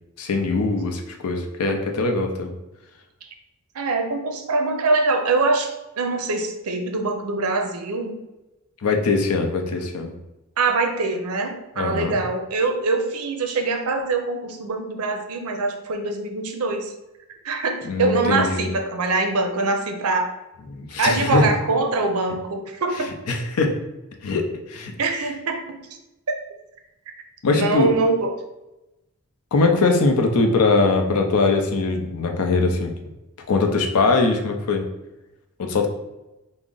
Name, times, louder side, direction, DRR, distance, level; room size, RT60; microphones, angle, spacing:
voice 1, 0.2-2.5 8.8-10.1 11.8-12.2 17.8-18.7 20.7-21.5 23.3-23.8 24.2-24.9 27.4-27.9 29.5-32.9 33.5-34.8 35.6-35.9, left 3 dB, 80° left, 4 dB, 0.5 m, -21 dB
voice 2, 3.7-5.7 6.0-8.1 10.6-16.9 17.4-20.3 21.0-23.1 25.0-25.6 27.5-28.3, right 3 dB, 70° right, 4 dB, 0.5 m, -23 dB
3.5 x 2.0 x 3.8 m, 0.97 s
head